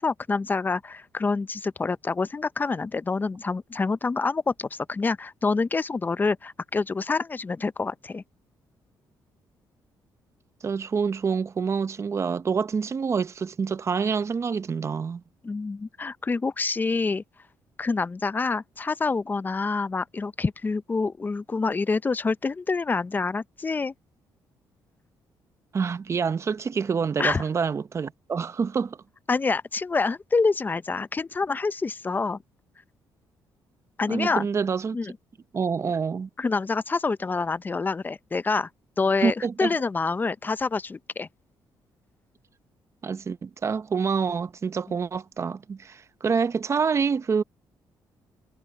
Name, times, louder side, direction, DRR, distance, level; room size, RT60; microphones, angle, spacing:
voice 1, 0.0-8.2 15.4-17.2 17.8-23.9 27.2-27.4 29.3-32.4 34.0-34.5 34.9-35.2 36.4-38.7 39.0-41.3, left 4 dB, 25° left, 0.6 m, -27 dB
voice 2, 10.6-15.2 25.7-29.0 34.1-35.0 35.5-36.3 39.2-39.7 43.0-47.4, right 5 dB, 35° right, 0.7 m, -27 dB
cardioid pair, 110°, 8 cm